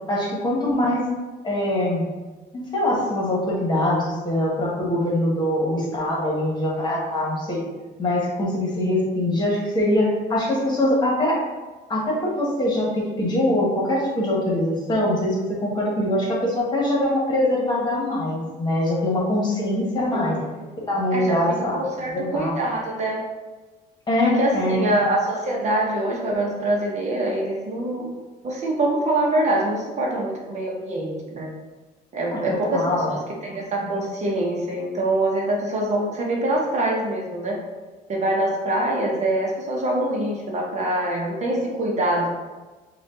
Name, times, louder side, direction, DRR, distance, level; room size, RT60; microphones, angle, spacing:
voice 1, 0.1-1.1 1.4-2.0 2.5-7.6 8.0-11.4 11.9-20.4 20.9-21.8 22.1-22.5 24.1-25.0 32.3-32.4 32.7-33.1, left 1 dB, 25° left, -4 dB, 1.4 m, -23 dB
voice 2, 20.1-20.4 21.1-23.2 24.2-28.1 28.4-31.5 32.1-37.6 38.1-42.3, right 1 dB, 45° right, -2 dB, 1.0 m, -24 dB
5.0 x 2.5 x 3.8 m, 1.3 s
cardioid pair, 110°, 17 cm